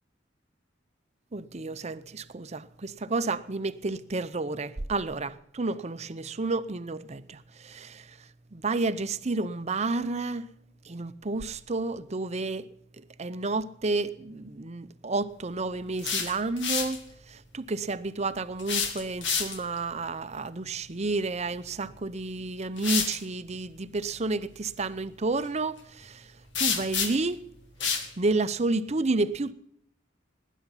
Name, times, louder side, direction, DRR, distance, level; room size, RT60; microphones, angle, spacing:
voice 1, 1.3-10.5 10.8-12.7 13.0-17.0 17.3-27.4 28.2-29.5, right 3 dB, 35° right, 0.7 m, -31 dB
sound 1, 15.8-17.0 18.6-19.8 21.8-22.0 22.8-23.2 26.5-27.3 27.8-28.1, left 6 dB, 65° left, 1.9 m, -29 dB
19.0 x 10.0 x 5.6 m
head